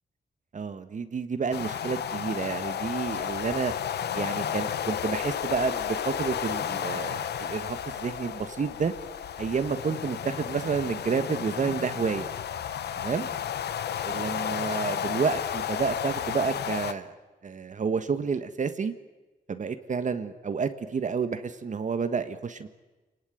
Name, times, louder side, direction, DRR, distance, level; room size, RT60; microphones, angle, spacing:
voice 1, 0.5-3.7 4.1-8.9 9.4-12.3 13.0-13.3 14.0-17.1 17.4-18.9 19.5-22.7, right 5 dB, 50° right, 10 dB, 1.6 m, -30 dB
sound 1, 1.5-16.9, left 9 dB, 90° left, 1.1 m, -32 dB
28.0 x 20.0 x 9.4 m, 1.2 s
cardioid pair, 105°, 17 cm